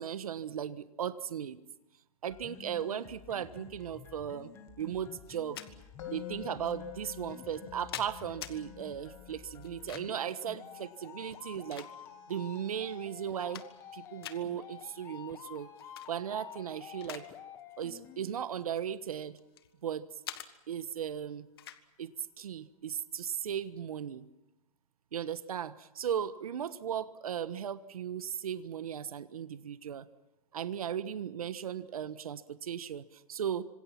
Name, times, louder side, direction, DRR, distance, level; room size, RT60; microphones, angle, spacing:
voice 1, 0.0-1.6 2.2-4.5 4.8-5.6 6.1-11.9 12.3-13.6 13.9-15.7 16.1-17.2 17.8-19.4 19.8-20.1 20.7-21.5 22.0-24.2 25.1-30.1 30.5-33.6, right 9 dB, 75° right, 13 dB, 1.3 m, -37 dB
sound 1, 2.3-18.3, left 8 dB, 15° left, 1.3 m, -51 dB
sound 2, 5.3-5.7 6.6-6.7 7.5-8.6 9.6-10.3 11.2-12.3 12.8-12.9 13.3-13.9 14.2-14.4 15.8-16.1 16.5-17.3 17.6-17.8 18.6-19.7 20.2-20.5 21.6-21.8, left 11 dB, 40° left, 1.5 m, -45 dB
Musical instrument, 6.0-17.1, left 11 dB, 55° left, 3.5 m, -51 dB
27.0 x 26.0 x 6.0 m, 0.92 s
hypercardioid pair, 175°, 19 cm